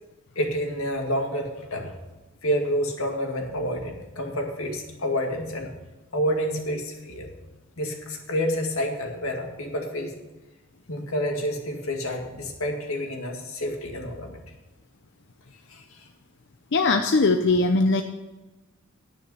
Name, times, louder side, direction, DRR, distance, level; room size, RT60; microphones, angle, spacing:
voice 1, 0.4-2.0 2.4-5.7 6.1-7.3 7.8-10.1 10.9-14.4 15.7-16.0, equal, 90° left, 2 dB, 2.1 m, -29 dB
voice 2, 16.7-18.0, left 3 dB, 60° left, 5 dB, 0.6 m, -20 dB
10.5 x 9.3 x 5.5 m, 1.1 s
head